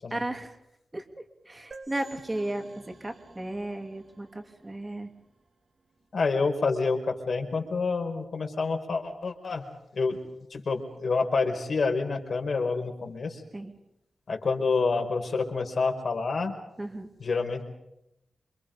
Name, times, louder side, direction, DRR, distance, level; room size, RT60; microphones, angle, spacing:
voice 1, 0.1-0.6 0.9-1.0 1.5-5.1 13.5-13.7 16.8-17.1, right 1 dB, 15° right, 5 dB, 2.9 m, -34 dB
sound 1, 1.7-5.2, right 3 dB, 35° right, 2.6 m, -50 dB
voice 2, 6.1-9.6 9.9-10.2 10.5-13.4 14.3-16.5 17.2-17.6, left 4 dB, 50° left, 3 dB, 5.1 m, -28 dB
28.0 x 27.5 x 5.3 m, 0.83 s
wide cardioid pair, 175°, 0 cm